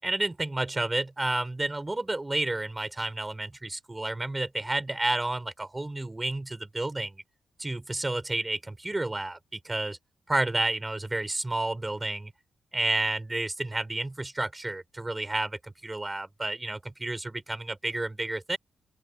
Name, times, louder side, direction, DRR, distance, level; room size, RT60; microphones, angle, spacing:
voice 1, 0.0-7.2 7.6-10.0 10.3-12.3 12.7-18.6, right 2 dB, 20° right, 5.7 m, -31 dB
open air
cardioid pair, 65°, 0 cm